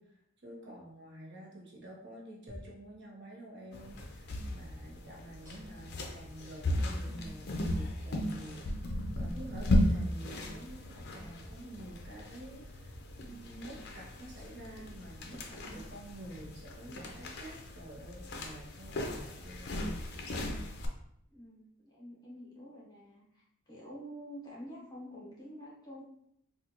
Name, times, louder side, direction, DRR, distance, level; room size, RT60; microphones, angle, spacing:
voice 1, 0.0-8.7 9.2-19.8, right 1 dB, 55° right, -3 dB, 0.8 m, -49 dB
sound 1, 2.5-2.8 3.9-4.2 5.4-6.0 6.9-7.1 8.4-8.6 11.4-11.6 12.9-13.1 14.4-14.7 15.9-16.0 17.4-17.6, equal, 15° right, 0.9 m, -53 dB
sound 2, 3.7-20.9, left 1 dB, 50° left, 0.5 m, -36 dB
voice 2, 21.3-26.0, equal, 20° left, -5 dB, 1.0 m, -48 dB
3.7 x 2.4 x 2.9 m, 0.76 s
head